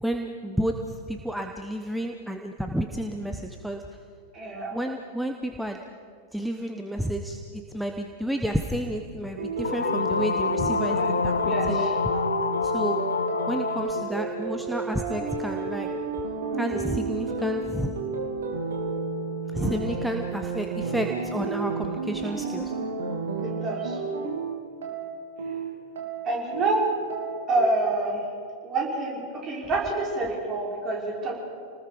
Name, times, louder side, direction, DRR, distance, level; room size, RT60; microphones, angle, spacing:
voice 1, 0.0-0.8 1.1-3.8 4.7-5.8 6.3-11.9 12.6-13.0 13.5-15.9 16.6-17.9 19.5-22.7, right 1 dB, ahead, 4 dB, 1.1 m, -31 dB
voice 2, 4.3-4.8 11.0-11.9 19.6-19.8 22.3-22.5 23.4-24.0 26.2-26.8 27.5-28.2 28.6-31.4, right 2 dB, 30° right, -2 dB, 5.8 m, -28 dB
sound 1, 9.4-27.7, right 3 dB, 65° right, 3.1 m, -31 dB
sound 2, 9.6-14.2, left 5 dB, 75° left, 0.4 m, -27 dB
29.0 x 19.5 x 5.1 m, 2.4 s
figure-of-eight pair, 90°, 0 cm